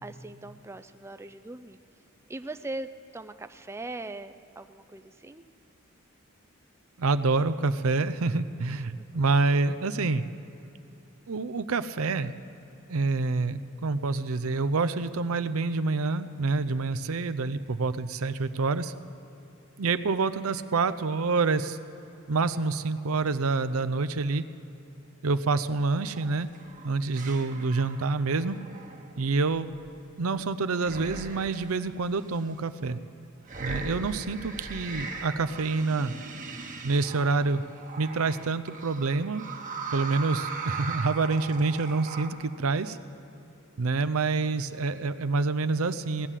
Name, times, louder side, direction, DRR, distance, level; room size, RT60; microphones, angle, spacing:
voice 1, 0.0-1.8 2.3-5.4 9.0-9.1, right 2 dB, 15° right, 9 dB, 0.4 m, -40 dB
voice 2, 7.0-10.2 11.3-12.3 12.9-18.9 19.8-21.8 22.3-24.4 25.2-26.5 26.8-28.6 29.2-29.7 30.2-33.0 33.6-36.1 36.8-37.6 38.0-39.4 39.9-43.0 43.8-46.3, right 3 dB, 80° right, 12 dB, 0.6 m, -27 dB
sound 1, 25.5-25.8 26.2-30.4 30.8-31.8 32.3-32.5 33.4-42.3, right 4 dB, 40° right, 1.2 m, -39 dB
18.0 x 9.8 x 7.4 m, 3.0 s
head